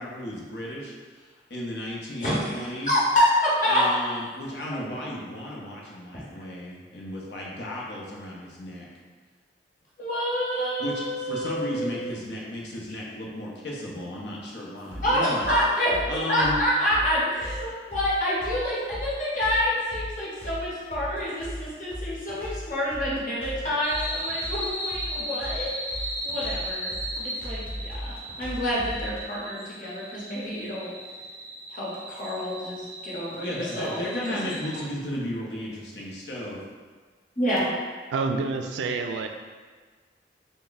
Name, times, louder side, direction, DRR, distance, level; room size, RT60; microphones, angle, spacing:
voice 1, 0.0-2.9 3.6-8.9 10.8-15.5 16.1-16.6 33.3-36.7, left 1 dB, 75° left, -4 dB, 0.7 m, -34 dB
voice 2, 2.2-3.8 4.7-4.8 6.1-6.3 10.0-11.9 15.0-25.7 26.2-26.9 27.2-30.9 31.7-34.0 34.3-34.5 37.4-37.7, equal, 45° left, -7 dB, 0.9 m, -27 dB
sound 1, 14.9-29.2, equal, 10° left, 0.8 m, -37 dB
sound 2, 23.8-34.8, equal, 20° right, 0.5 m, -36 dB
voice 3, 38.1-39.3, right 4 dB, 85° right, 5 dB, 0.3 m, -28 dB
3.4 x 2.1 x 3.9 m, 1.5 s
head